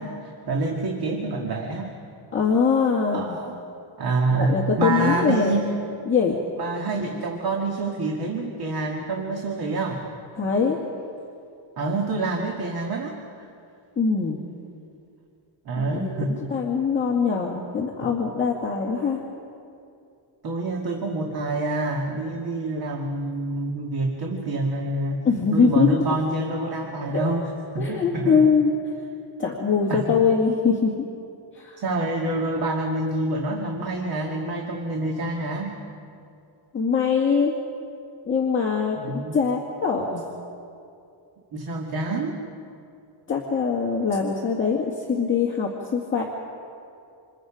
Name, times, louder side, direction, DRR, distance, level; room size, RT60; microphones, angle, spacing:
voice 1, 0.0-1.9 3.1-3.5 4.0-5.7 6.6-10.0 11.8-13.5 15.7-16.3 20.4-25.2 25.5-28.4 29.9-30.2 31.8-35.8 39.0-39.4 41.5-42.3, right 2 dB, 50° right, 1 dB, 2.2 m, -27 dB
voice 2, 2.3-3.4 4.3-5.6 6.1-6.4 10.4-10.8 14.0-14.4 15.8-19.2 25.2-26.1 27.1-27.3 27.8-28.7 29.4-30.9 31.5-31.8 36.7-37.5 38.3-40.2 43.3-46.2, left 5 dB, 25° left, -3 dB, 2.1 m, -22 dB
28.5 x 27.5 x 5.1 m, 2.6 s
cardioid pair, 175°, 48 cm